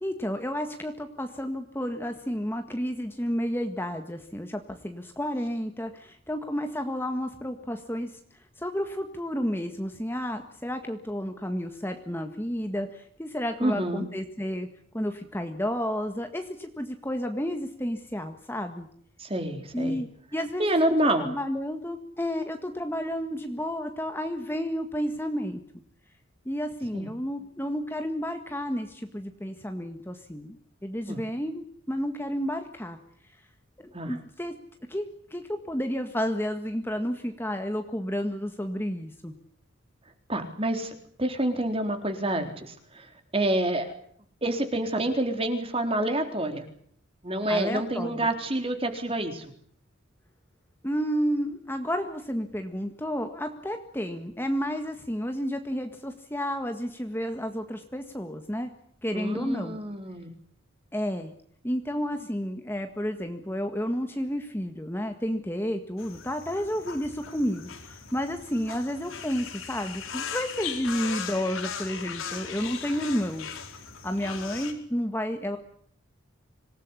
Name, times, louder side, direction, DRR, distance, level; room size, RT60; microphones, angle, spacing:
voice 1, 0.0-8.1 8.6-14.7 14.9-18.9 19.7-25.6 26.5-30.6 30.8-33.0 33.8-34.5 34.9-35.1 35.3-39.3 47.5-48.3 50.8-58.7 59.0-59.8 60.9-61.3 61.6-73.5 74.0-75.6, equal, 10° left, 6 dB, 1.8 m, -31 dB
voice 2, 13.6-14.0 19.2-20.0 20.6-21.3 26.9-27.1 31.1-31.2 33.9-34.2 40.3-43.9 44.4-46.6 47.2-49.5 59.1-60.3, right 1 dB, 30° right, 6 dB, 3.9 m, -28 dB
sound 1, 66.0-74.7, left 6 dB, 85° left, 4.6 m, -38 dB
26.5 x 18.5 x 9.8 m, 0.62 s
head